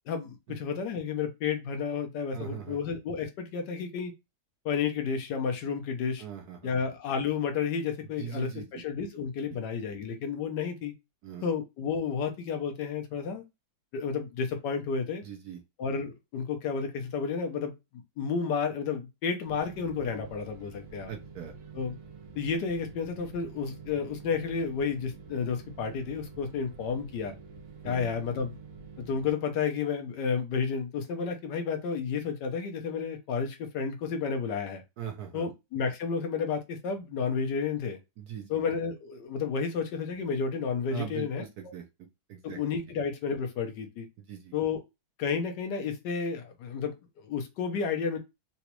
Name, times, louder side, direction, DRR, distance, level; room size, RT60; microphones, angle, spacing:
voice 1, 0.1-4.1 4.6-6.2 6.6-10.9 11.4-13.4 13.9-15.3 15.8-17.7 18.2-21.1 21.7-22.0 22.3-27.3 27.8-28.5 29.0-34.8 35.3-38.0 38.5-41.5 42.4-44.1 44.5-44.8 45.2-48.2, left 6 dB, 70° left, 5 dB, 1.3 m, -31 dB
voice 2, 2.3-2.8 6.2-6.8 8.2-8.7 11.2-11.5 15.2-15.6 21.1-21.5 27.8-28.1 35.0-35.5 38.2-38.6 40.9-42.6 44.3-44.5, right 8 dB, 65° right, 3 dB, 1.1 m, -40 dB
sound 1, 19.4-29.3, right 5 dB, 80° right, 1.4 m, -48 dB
4.0 x 2.3 x 2.9 m, 0.23 s
omnidirectional pair, 2.0 m